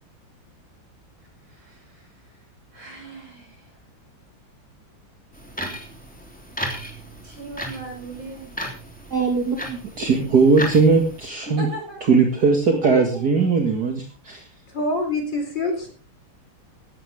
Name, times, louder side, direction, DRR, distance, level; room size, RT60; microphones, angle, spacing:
voice 1, 1.5-2.3 2.7-3.8 7.2-8.5 11.5-12.0, right 2 dB, 70° right, 1 dB, 7.6 m, -38 dB
sound 1, 5.3-11.3, equal, 5° left, 3.1 m, -35 dB
voice 2, 9.1-11.7 12.1-14.4, right 4 dB, 50° right, 2 dB, 2.5 m, -19 dB
voice 3, 14.7-15.9, left 2 dB, 60° left, 5 dB, 4.6 m, -25 dB
17.0 x 13.0 x 3.6 m, 0.33 s
omnidirectional pair, 2.3 m